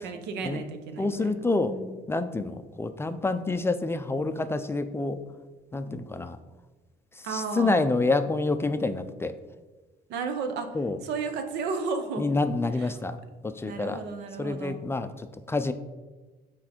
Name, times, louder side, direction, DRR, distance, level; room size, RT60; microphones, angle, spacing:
voice 1, 0.0-2.0 7.2-7.9 10.1-10.7 11.0-12.3 12.8-12.9 13.6-14.8, right 4 dB, 85° right, 6 dB, 0.8 m, -33 dB
voice 2, 1.0-1.8 2.1-5.2 5.7-6.4 7.1-9.3 10.7-11.0 12.2-13.2 13.4-14.0 14.4-15.7, left 3 dB, 15° left, 9 dB, 0.4 m, -28 dB
6.3 x 4.4 x 4.3 m, 1.2 s
cardioid pair, 110°, 17 cm